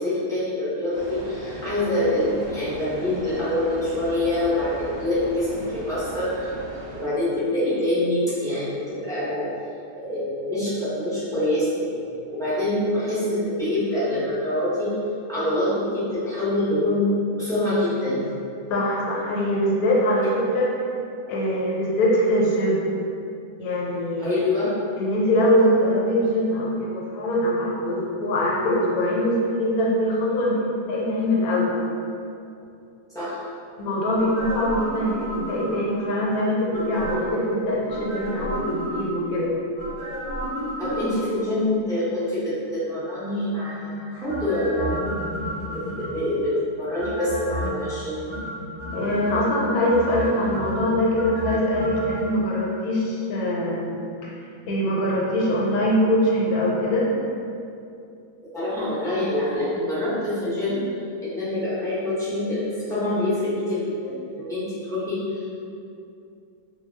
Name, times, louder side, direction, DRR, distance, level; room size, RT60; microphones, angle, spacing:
voice 1, 0.0-6.5 6.9-9.5 10.0-12.0 12.3-14.9 15.3-17.1 17.3-18.2 24.2-24.7 33.1-33.4 40.8-45.1 45.7-48.2 58.5-60.8 61.2-65.6, left 1 dB, 5° left, -13 dB, 0.5 m, -25 dB
sound 1, 0.9-7.1, right 1 dB, 70° right, 0.8 m, -38 dB
voice 2, 18.7-20.7 21.3-22.9 23.6-24.4 25.0-30.6 30.9-31.8 33.8-39.5 48.9-54.1 54.7-57.1, left 1 dB, 80° left, -5 dB, 1.1 m, -23 dB
sound 2, 34.1-36.0 36.7-37.4 37.9-39.3 39.8-41.5 44.3-46.4 47.0-47.9 48.3-49.4 49.9-52.2 52.5-52.6, equal, 45° left, 0.8 m, -32 dB
2.3 x 2.2 x 3.3 m, 2.5 s
omnidirectional pair, 1.6 m